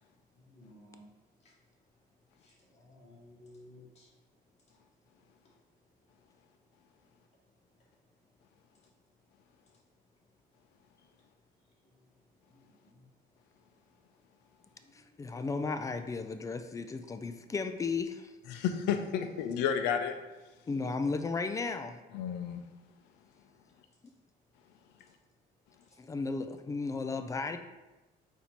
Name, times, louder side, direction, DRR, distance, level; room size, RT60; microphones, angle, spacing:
voice 1, 0.5-1.0 2.4-4.1 12.6-12.9 14.8-15.0, left 1 dB, 40° left, -6 dB, 1.5 m, -56 dB
voice 2, 14.9-18.3 20.7-22.0 26.0-27.6, left 4 dB, 20° left, 8 dB, 0.3 m, -34 dB
voice 3, 18.5-20.2 22.1-22.6, left 8 dB, 90° left, 7 dB, 0.5 m, -31 dB
4.1 x 2.7 x 4.4 m, 1.1 s
cardioid pair, 110°, 17 cm